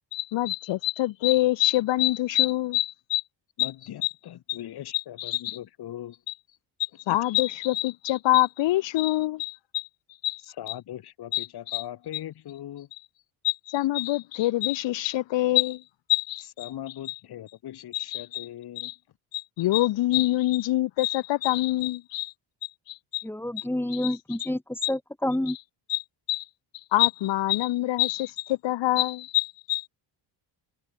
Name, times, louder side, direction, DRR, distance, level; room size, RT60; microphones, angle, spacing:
voice 1, 0.1-3.2 3.6-3.7 4.0-4.1 4.5-4.6 5.2-5.6 7.1-9.9 10.2-10.4 11.3-11.8 13.4-15.8 16.1-16.4 17.9-18.4 18.8-18.9 19.3-22.3 22.9-23.2 24.0-24.1 24.8-24.9 25.9-26.0 26.3-26.4 26.9-29.9, left 16 dB, 70° left, 1.0 m, -25 dB
voice 2, 3.6-6.2 6.5-6.6 7.1-7.2 10.4-12.9 16.4-18.9, left 12 dB, 55° left, 1.6 m, -40 dB
voice 3, 23.2-25.6, left 1 dB, 5° left, 1.2 m, -29 dB
cardioid pair, 140°, 46 cm